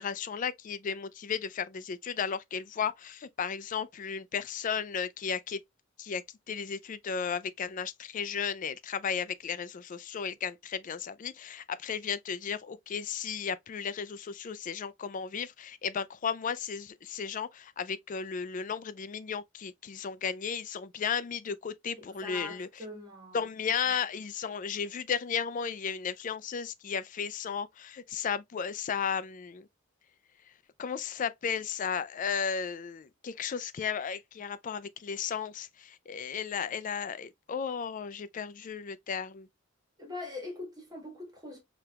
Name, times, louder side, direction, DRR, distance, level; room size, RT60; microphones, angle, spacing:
voice 1, 0.0-5.6 6.0-6.2 6.5-22.8 23.3-29.7 30.8-39.5, left 7 dB, 40° left, 0.4 m, -34 dB
voice 2, 22.0-23.4 40.0-41.6, left 2 dB, 20° right, 1.6 m, -42 dB
5.1 x 2.9 x 2.3 m
head